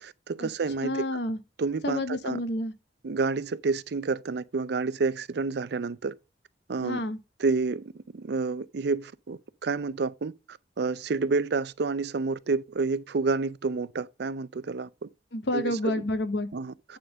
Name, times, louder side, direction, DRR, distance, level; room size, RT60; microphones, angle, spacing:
voice 1, 0.0-1.1 1.6-2.4 3.0-6.1 6.7-7.0 7.4-15.1 15.5-15.9 16.5-17.0, right 4 dB, 65° right, 0.5 m, -29 dB
voice 2, 0.8-1.4 1.8-2.7 6.8-7.2 15.3-16.5, left 1 dB, 70° left, 1.1 m, -29 dB
9.3 x 3.8 x 6.2 m
head